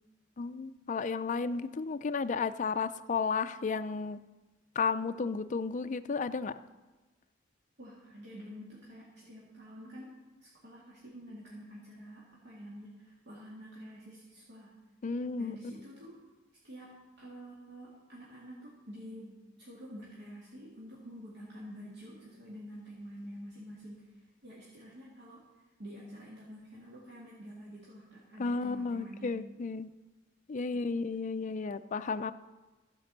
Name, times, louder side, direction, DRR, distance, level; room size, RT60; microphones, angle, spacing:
voice 1, 0.4-4.2 4.8-6.5 15.0-15.5 28.4-29.9 30.5-32.3, left 4 dB, 40° left, 11 dB, 0.4 m, -33 dB
voice 2, 7.8-14.7 15.3-16.2 16.6-19.3 19.6-24.1 24.4-25.4 25.8-29.6, equal, 60° right, -6 dB, 2.1 m, -48 dB
14.5 x 5.3 x 6.7 m, 1.2 s
head